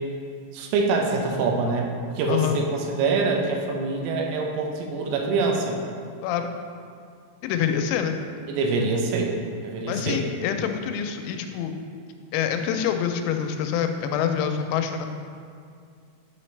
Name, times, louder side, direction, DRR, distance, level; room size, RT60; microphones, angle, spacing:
voice 1, 0.5-5.8 8.5-9.3 9.6-10.2, right 3 dB, 85° right, 1 dB, 3.4 m, -25 dB
voice 2, 7.4-8.2 9.9-11.8 12.3-15.1, left 8 dB, 90° left, 6 dB, 3.3 m, -26 dB
9.1 x 5.0 x 3.2 m, 2.3 s
omnidirectional pair, 6.0 m